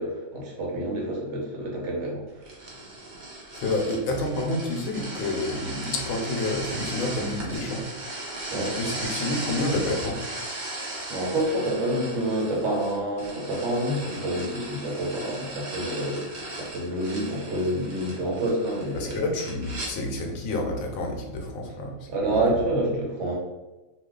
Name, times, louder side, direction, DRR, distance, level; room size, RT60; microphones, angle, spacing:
voice 1, 0.0-2.4 8.2-8.7 11.1-16.2 16.5-19.2 22.1-23.3, right 1 dB, 60° right, -2 dB, 1.1 m, -28 dB
sound 1, 2.4-19.9, right 2 dB, 45° right, 0.7 m, -37 dB
voice 2, 3.5-7.8 8.8-10.2 18.9-22.4, left 2 dB, 80° left, 2 dB, 1.0 m, -29 dB
2.4 x 2.3 x 3.6 m, 1.1 s
omnidirectional pair, 1.4 m